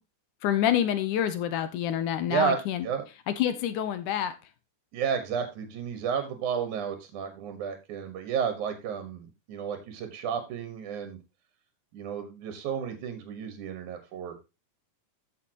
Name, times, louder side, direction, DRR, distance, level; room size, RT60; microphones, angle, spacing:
voice 1, 0.4-2.9 3.4-4.4, left 10 dB, 75° left, 11 dB, 2.3 m, -27 dB
voice 2, 2.3-3.0 4.9-11.2 11.9-14.4, right 7 dB, 65° right, 8 dB, 2.7 m, -32 dB
14.0 x 6.9 x 2.9 m, 0.25 s
omnidirectional pair, 3.9 m